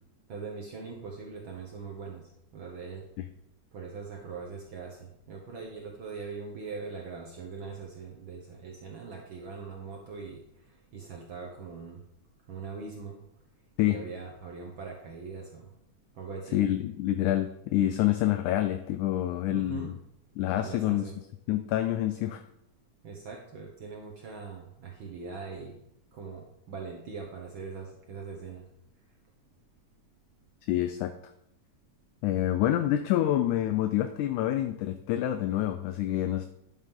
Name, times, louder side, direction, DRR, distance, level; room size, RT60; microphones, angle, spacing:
voice 1, 0.3-3.0 3.7-12.0 12.5-13.2 13.9-15.7 16.1-16.6 19.5-19.9 20.6-21.1 23.0-25.8 26.1-28.6, right 5 dB, 70° right, -1 dB, 1.1 m, -41 dB
voice 2, 16.5-20.0 20.4-21.1 21.5-22.4 30.7-31.1 32.2-36.5, left 13 dB, 80° left, 8 dB, 1.9 m, -27 dB
10.5 x 7.4 x 3.7 m, 0.79 s
omnidirectional pair, 3.7 m